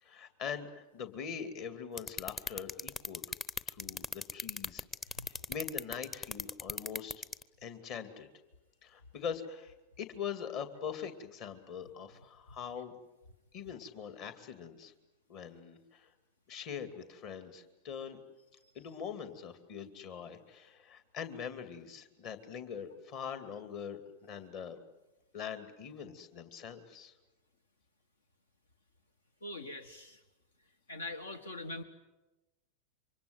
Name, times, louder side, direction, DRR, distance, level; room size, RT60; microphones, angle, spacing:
voice 1, 0.0-3.2 3.7-4.1 4.3-4.8 5.2-7.2 7.6-8.3 8.8-12.9 13.5-14.9 15.3-16.1 16.5-18.2 18.7-24.8 25.3-27.1, left 7 dB, 40° left, 9 dB, 2.5 m, -43 dB
sound 1, 2.0-7.4, left 3 dB, 20° left, 0.9 m, -36 dB
voice 2, 29.4-30.2 30.9-31.8, left 2 dB, 70° left, 10 dB, 1.5 m, -42 dB
28.0 x 25.0 x 8.0 m, 1.0 s
figure-of-eight pair, 90°, 0 cm